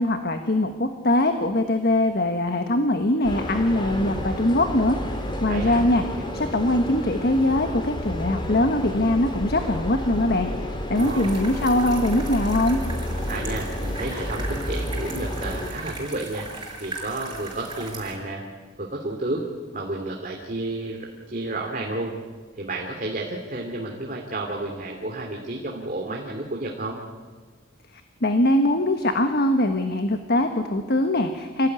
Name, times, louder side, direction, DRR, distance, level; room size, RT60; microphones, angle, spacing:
voice 1, 0.0-5.0 5.4-6.0 6.3-12.8 28.2-31.7, left 1 dB, 50° left, 7 dB, 1.4 m, -22 dB
sound 1, 3.2-15.7, left 1 dB, 25° left, 3.1 m, -30 dB
voice 2, 5.5-5.8 11.0-11.3 13.3-16.5 16.8-18.4 18.8-19.4 19.7-22.2 22.6-27.0, right 2 dB, 45° right, 0 dB, 2.7 m, -31 dB
sound 2, 11.0-18.2, right 2 dB, 20° right, 6.0 m, -38 dB
26.5 x 17.0 x 9.6 m, 1.5 s
head